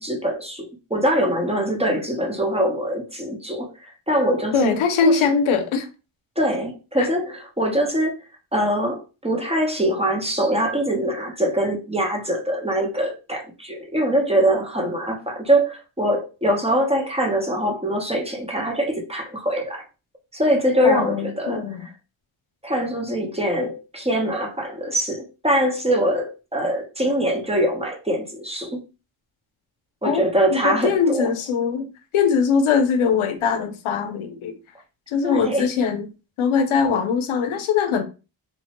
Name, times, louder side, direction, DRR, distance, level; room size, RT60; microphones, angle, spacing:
voice 1, 0.0-5.2 6.4-8.1 8.5-19.8 20.3-21.6 22.6-28.8 30.0-31.3 35.2-35.7, equal, 15° right, 0.8 m, -23 dB
voice 2, 4.5-5.9 7.0-7.1 20.8-21.9 30.0-30.2 30.5-31.9 32.1-34.5 35.1-36.1 36.4-38.0, left 6 dB, 85° left, 0.6 m, -21 dB
3.1 x 2.1 x 2.8 m
cardioid pair, 70°, 48 cm